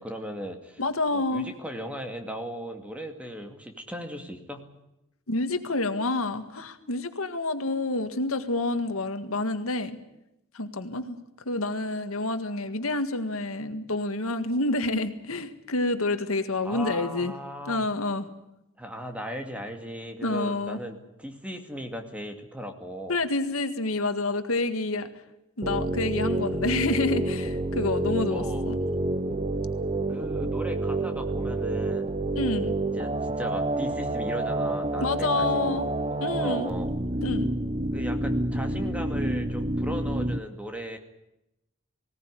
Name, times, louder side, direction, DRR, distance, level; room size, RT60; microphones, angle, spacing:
voice 1, 0.0-0.8 1.1-4.6 16.6-17.9 18.8-23.2 28.3-28.7 30.1-32.1 32.9-36.9 37.9-41.0, equal, 5° right, 5 dB, 2.3 m, -37 dB
voice 2, 0.8-1.5 5.3-10.0 10.5-11.2 11.5-17.3 17.7-18.3 20.2-20.8 23.1-25.1 25.6-28.8 32.4-32.8 35.0-35.9 36.2-36.7 37.2-37.5, left 2 dB, 80° left, 9 dB, 1.8 m, -28 dB
sound 1, 25.6-40.4, right 2 dB, 25° right, 0.8 m, -28 dB
20.0 x 17.5 x 10.0 m, 0.88 s
head